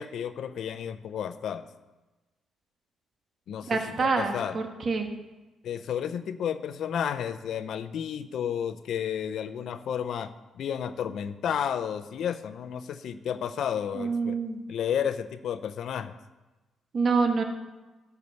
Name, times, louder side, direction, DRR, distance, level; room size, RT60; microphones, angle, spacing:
voice 1, 0.0-1.6 3.5-4.6 5.6-14.4 14.7-16.1, left 8 dB, 70° left, 11 dB, 0.6 m, -32 dB
voice 2, 3.7-5.1 13.9-14.6 16.9-17.4, right 4 dB, 45° right, 4 dB, 1.4 m, -26 dB
12.0 x 4.7 x 7.0 m, 1.1 s
cardioid pair, 90°, 0 cm